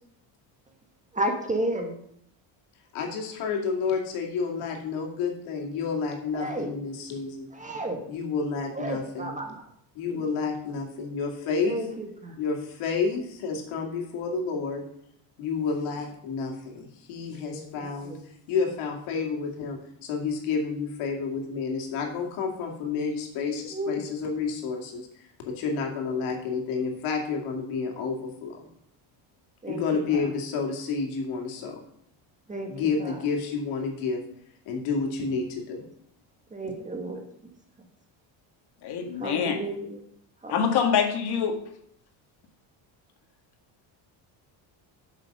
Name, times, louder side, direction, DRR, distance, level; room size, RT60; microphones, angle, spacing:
voice 1, 1.1-2.0 6.3-6.7 7.5-8.0 8.7-9.7 10.1-10.3 11.6-12.4 17.5-18.2 23.6-24.0 29.6-30.3 32.5-32.7 33.0-33.2 36.5-37.2 39.2-40.0 40.4-40.7, right 1 dB, 15° right, 3 dB, 1.6 m, -33 dB
voice 2, 2.9-7.5 8.1-9.3 9.9-11.8 12.4-14.9 15.4-18.2 18.5-28.7 29.7-31.8 32.7-34.2 34.7-35.8, left 5 dB, 80° left, 1 dB, 2.4 m, -30 dB
voice 3, 38.8-39.6 40.5-41.5, left 7 dB, 50° left, 4 dB, 1.9 m, -25 dB
8.8 x 6.8 x 5.4 m, 0.69 s
cardioid pair, 130°, 48 cm